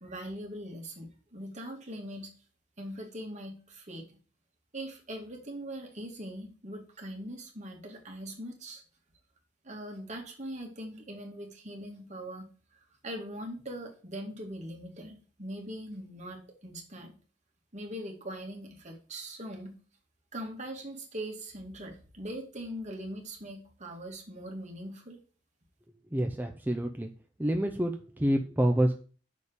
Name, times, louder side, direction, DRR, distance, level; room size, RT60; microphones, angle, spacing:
voice 1, 0.0-2.3 2.8-4.2 4.7-8.8 9.6-12.5 13.0-17.2 17.7-19.8 20.3-25.2, right 1 dB, 40° right, 2 dB, 2.3 m, -41 dB
voice 2, 26.1-27.1 27.4-29.0, right 1 dB, 10° right, 4 dB, 0.7 m, -27 dB
6.5 x 5.2 x 6.9 m, 0.39 s
head